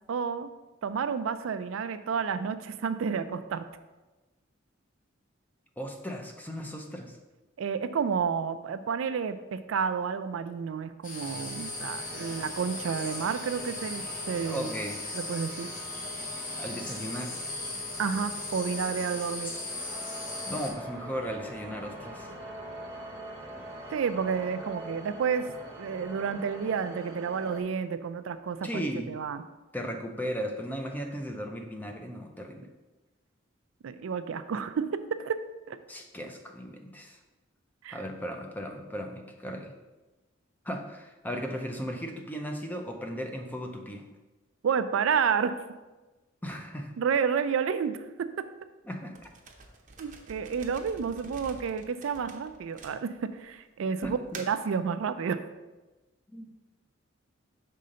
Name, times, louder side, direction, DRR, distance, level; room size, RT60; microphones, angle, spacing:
voice 1, 0.1-0.5 0.8-3.7 7.6-14.7 15.1-15.7 18.0-19.5 23.9-25.5 25.8-29.4 33.8-35.4 35.7-35.8 37.8-38.0 44.6-45.5 47.0-48.5 50.0-53.1 53.4-55.4, right 6 dB, 75° right, 11 dB, 0.4 m, -30 dB
voice 2, 5.8-7.2 14.4-15.0 16.6-17.4 20.5-22.3 28.6-29.1 29.7-32.7 35.9-37.2 37.9-39.7 40.6-44.1 46.4-46.9 48.9-49.2 54.0-54.4 56.3-56.5, equal, 10° left, 3 dB, 0.5 m, -36 dB
sound 1, 11.0-20.7, left 2 dB, 40° left, 0.9 m, -38 dB
sound 2, 11.2-27.6, right 1 dB, 15° right, 1.0 m, -44 dB
sound 3, 49.1-53.5 54.0-54.7, right 3 dB, 40° right, 0.7 m, -47 dB
5.6 x 3.8 x 5.1 m, 1.1 s
head